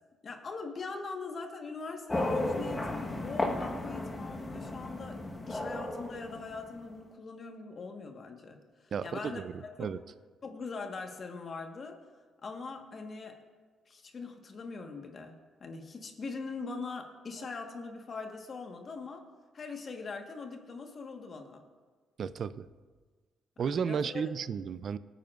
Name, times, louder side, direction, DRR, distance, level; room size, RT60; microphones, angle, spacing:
voice 1, 0.2-10.0 10.4-12.0 12.4-13.4 13.9-19.3 19.5-21.6 23.6-24.3, left 4 dB, 45° left, 4 dB, 1.4 m, -42 dB
sound 1, 2.1-6.9, left 1 dB, 20° left, 1.3 m, -34 dB
voice 2, 8.9-10.0 22.2-22.7 23.6-25.0, right 7 dB, 55° right, 15 dB, 0.4 m, -33 dB
20.0 x 9.2 x 2.5 m, 1.4 s
cardioid pair, 90°, 0 cm